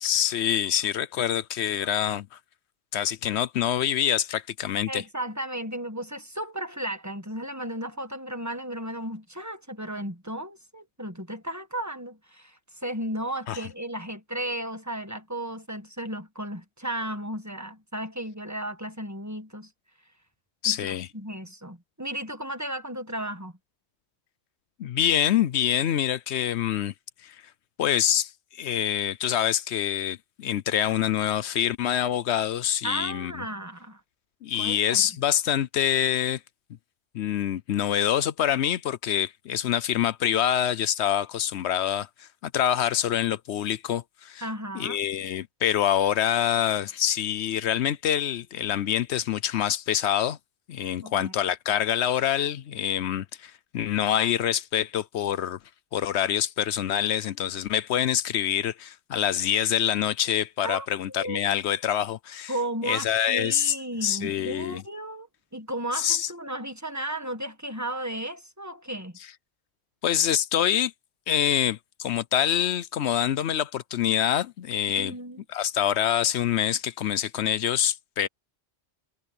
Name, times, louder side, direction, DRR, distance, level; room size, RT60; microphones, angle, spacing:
voice 1, 0.0-2.3 2.9-5.0 13.5-13.6 20.6-21.1 24.8-26.9 27.2-27.4 27.8-33.4 34.4-36.4 37.1-44.4 44.7-50.4 50.7-55.6 55.9-62.5 62.9-63.7 64.0-64.8 65.9-66.3 70.0-70.9 71.3-75.1 75.5-78.3, left 10 dB, 75° left, 0.9 m, -26 dB
voice 2, 4.9-19.7 20.6-23.5 32.8-34.0 34.5-35.1 44.4-45.0 51.0-51.3 60.6-61.4 62.5-65.3 65.5-69.2 75.0-75.4, right 1 dB, 15° right, 1.5 m, -34 dB
omnidirectional pair, 1.1 m